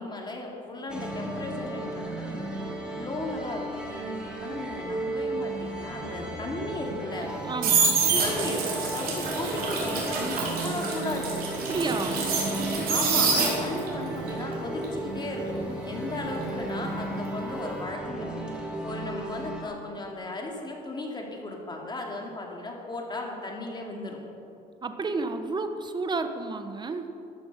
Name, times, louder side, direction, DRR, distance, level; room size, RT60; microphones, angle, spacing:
voice 1, 0.0-2.5 3.0-3.7 4.4-7.3 8.1-11.4 12.9-18.4 18.8-24.2, left 2 dB, 25° left, 0 dB, 2.7 m, -35 dB
sound 1, 0.9-19.6, right 1 dB, 5° right, 2.7 m, -35 dB
sound 2, 7.2-13.9 14.3-17.2 17.4-17.8, right 4 dB, 60° right, 3.9 m, -27 dB
voice 2, 7.4-8.0 11.7-12.2 24.8-27.1, right 3 dB, 25° right, 8 dB, 1.1 m, -31 dB
14.0 x 11.5 x 5.8 m, 2.7 s
cardioid pair, 110°, 17 cm